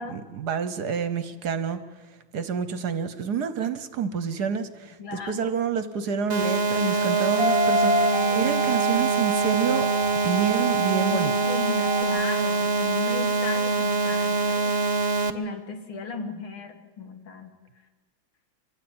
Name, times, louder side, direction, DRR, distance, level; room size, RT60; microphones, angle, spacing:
voice 1, 0.1-1.8 2.3-8.0 8.3-9.9 10.2-11.3, right 6 dB, 60° right, 12 dB, 1.3 m, -28 dB
voice 2, 5.0-5.5 7.8-8.5 10.9-14.8 15.3-17.5, left 4 dB, 85° left, 5 dB, 2.8 m, -36 dB
sound 1, 6.3-15.3, right 3 dB, 40° right, 0.5 m, -24 dB
sound 2, 6.9-12.0, right 2 dB, 10° left, 1.8 m, -28 dB
25.0 x 15.0 x 8.8 m, 1.3 s
omnidirectional pair, 2.2 m